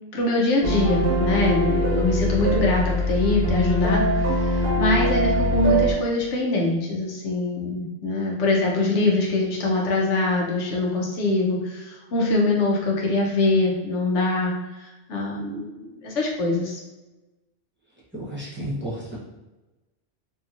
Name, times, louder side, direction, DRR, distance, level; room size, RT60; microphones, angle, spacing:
voice 1, 0.1-16.8, left 2 dB, 80° left, -1 dB, 1.1 m, -23 dB
sound 1, 0.6-5.9, equal, 55° right, 0.8 m, -22 dB
voice 2, 18.1-19.2, equal, 10° right, -8 dB, 0.9 m, -32 dB
3.0 x 2.7 x 2.5 m, 1.1 s
omnidirectional pair, 1.2 m